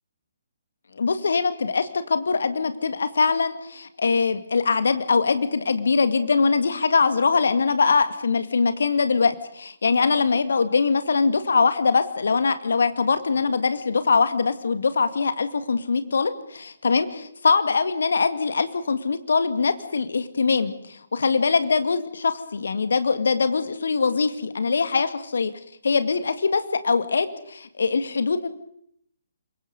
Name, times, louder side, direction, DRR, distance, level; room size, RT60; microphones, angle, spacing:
voice 1, 1.0-25.5 25.8-28.5, left 4 dB, 60° left, 11 dB, 1.9 m, -22 dB
27.0 x 23.0 x 5.3 m, 0.71 s
figure-of-eight pair, 135°, 0 cm